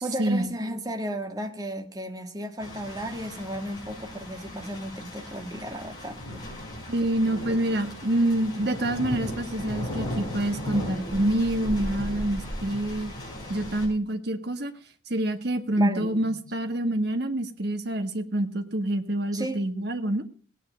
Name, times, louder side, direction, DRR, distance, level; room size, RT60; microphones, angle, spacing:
voice 1, 0.0-6.4 15.8-16.4 19.3-19.7, right 1 dB, 20° right, 5 dB, 1.6 m, -34 dB
sound 1, 2.6-13.9, left 1 dB, 20° left, 6.4 m, -36 dB
voice 2, 6.9-13.1 13.5-14.7 15.1-20.3, right 1 dB, 55° right, 7 dB, 1.7 m, -27 dB
17.5 x 9.3 x 6.3 m, 0.40 s
head